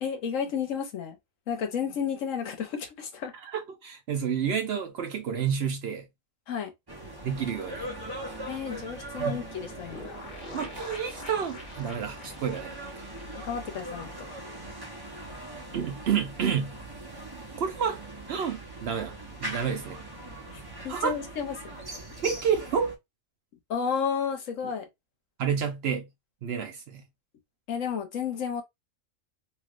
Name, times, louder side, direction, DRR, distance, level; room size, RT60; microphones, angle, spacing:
voice 1, 0.0-1.2 1.5-3.3 6.5-6.7 8.5-10.2 13.4-14.1 20.5-21.7 23.7-24.9 27.7-28.6, left 7 dB, 70° left, 1.2 m, -32 dB
voice 2, 3.4-6.1 7.2-7.9 9.2-9.4 10.5-13.0 15.7-16.7 17.6-18.0 18.3-19.1 19.4-20.0 20.9-21.2 22.2-23.0 25.4-26.1 26.4-27.0, right 7 dB, 65° right, 0.7 m, -29 dB
sound 1, 6.9-22.9, right 1 dB, 20° right, 0.8 m, -40 dB
sound 2, 9.9-14.5 14.8-14.9 15.1-15.2, left 2 dB, 40° left, 1.2 m, -46 dB
3.2 x 2.9 x 2.4 m
omnidirectional pair, 1.4 m